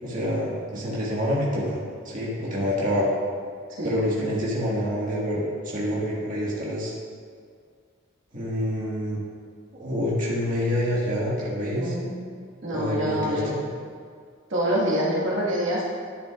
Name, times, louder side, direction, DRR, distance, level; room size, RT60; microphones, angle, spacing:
voice 1, 0.0-3.1 3.8-6.9 8.3-9.2 9.7-11.9 12.7-13.6, equal, 40° right, -6 dB, 1.8 m, -27 dB
voice 2, 11.7-12.1 12.6-13.6 14.5-15.8, equal, 60° right, -6 dB, 1.7 m, -26 dB
11.5 x 8.9 x 2.5 m, 2.1 s
head